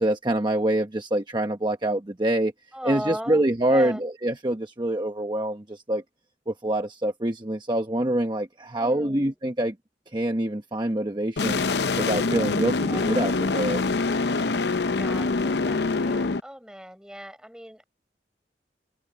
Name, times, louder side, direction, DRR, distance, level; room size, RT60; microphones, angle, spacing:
voice 1, 0.0-2.5 2.8-6.0 6.5-9.7 10.1-11.6 12.0-13.8, right 1 dB, 25° right, 1.0 m, -25 dB
voice 2, 2.7-4.0 8.7-9.4 12.8-13.3 15.0-17.8, equal, 5° right, 4.9 m, -38 dB
sound 1, 11.4-16.4, left 3 dB, 65° left, 0.7 m, -25 dB
head